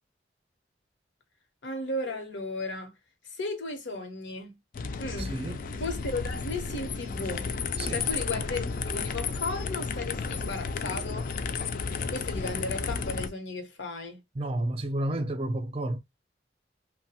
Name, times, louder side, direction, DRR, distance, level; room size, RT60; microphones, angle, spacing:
voice 1, 1.6-2.9 3.4-4.6 5.0-5.4 5.8-7.5 7.9-11.3 12.1-14.2, left 2 dB, 85° left, 0.9 m, -35 dB
sound 1, 4.7-13.3, left 5 dB, 50° left, 0.3 m, -32 dB
voice 2, 5.2-5.6 7.8-8.1 14.3-16.0, right 1 dB, 30° right, 0.4 m, -31 dB
2.8 x 2.1 x 2.7 m
head